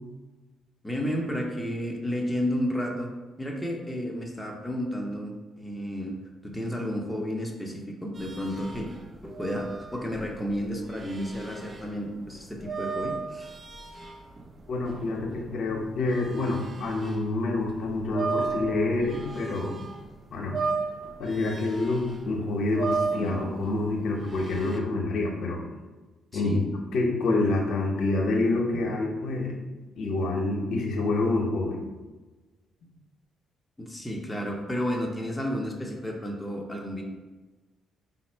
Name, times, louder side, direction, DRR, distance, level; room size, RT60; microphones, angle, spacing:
voice 1, 0.8-3.1 3.4-8.9 9.2-13.6 26.3-26.6 33.8-37.0, equal, 5° left, -1 dB, 0.6 m, -32 dB
sound 1, 8.2-17.2 17.7-20.1 20.4-24.8, right 4 dB, 35° right, 0.4 m, -35 dB
voice 2, 14.7-19.8 20.3-20.5 21.2-25.6 26.3-26.6 26.9-29.5 30.0-31.8, left 2 dB, 70° left, 0 dB, 0.7 m, -27 dB
4.0 x 2.0 x 4.3 m, 1.2 s
cardioid pair, 90°, 0 cm